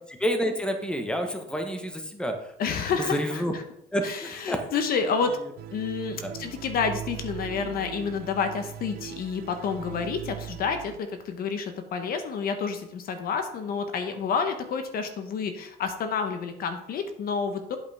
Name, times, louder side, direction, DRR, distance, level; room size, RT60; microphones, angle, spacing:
voice 1, 0.1-2.5 3.0-3.5 3.9-4.8 5.3-5.4 6.2-6.3, equal, 5° left, 5 dB, 1.3 m, -29 dB
voice 2, 2.6-3.4 4.0-5.4 5.7-17.8, left 5 dB, 60° left, 7 dB, 1.2 m, -29 dB
sound 1, 5.6-11.0, right 11 dB, 65° right, 0.5 m, -39 dB
8.4 x 8.0 x 3.5 m, 0.75 s
cardioid pair, 110°, 17 cm